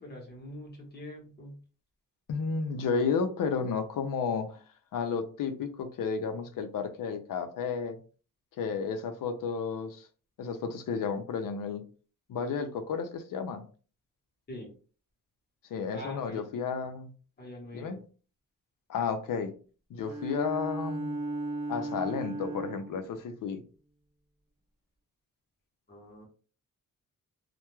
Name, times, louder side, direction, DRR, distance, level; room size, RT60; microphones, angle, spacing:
voice 1, 0.0-1.6 14.5-14.7 15.9-16.4 17.4-18.0 25.9-26.2, left 1 dB, 30° left, -1 dB, 0.9 m, -44 dB
voice 2, 2.3-4.6 4.9-8.0 8.6-10.0 10.4-11.8 12.3-13.6 15.7-17.1 17.7-18.0 18.9-19.5 19.9-21.2 21.7-23.6, left 5 dB, 75° left, 7 dB, 0.5 m, -32 dB
Bowed string instrument, 20.0-23.1, right 2 dB, 10° right, 0.7 m, -36 dB
2.2 x 2.2 x 2.9 m, 0.39 s
wide cardioid pair, 180°, 33 cm